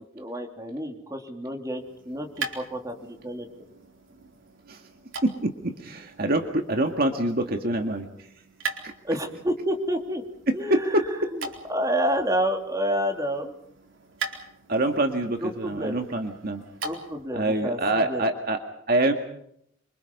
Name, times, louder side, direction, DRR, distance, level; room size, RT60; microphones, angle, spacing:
voice 1, 0.1-3.5 9.0-10.2 10.5-11.4 11.7-13.5 15.4-15.9 16.8-18.3, equal, 20° right, 3 dB, 3.1 m, -29 dB
sound 1, 1.7-17.3, right 4 dB, 90° right, 4.2 m, -41 dB
voice 2, 5.2-8.3 8.8-8.9 10.5-11.0 14.7-16.6 17.3-18.6 18.9-19.1, right 1 dB, 50° right, 4 dB, 2.0 m, -25 dB
27.5 x 25.0 x 5.5 m, 0.73 s
head